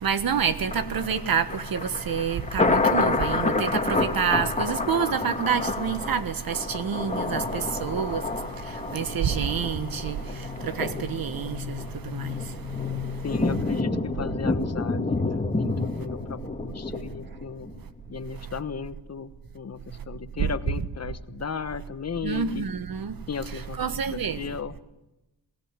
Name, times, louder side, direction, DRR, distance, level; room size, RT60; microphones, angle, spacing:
voice 1, 0.0-8.2 8.9-10.2 10.6-12.4 20.4-20.5 22.2-23.1 23.8-24.4, right 7 dB, 60° right, 1.6 m, -27 dB
sound 1, 0.7-4.6 6.1-13.7, left 13 dB, 70° left, 1.1 m, -41 dB
Thunder, 0.7-17.8 18.2-18.3, left 3 dB, 20° left, 2.0 m, -29 dB
voice 2, 13.2-17.7 18.1-22.7 23.3-24.7, left 6 dB, 40° left, 1.2 m, -36 dB
22.5 x 17.0 x 9.1 m
cardioid pair, 80°, 39 cm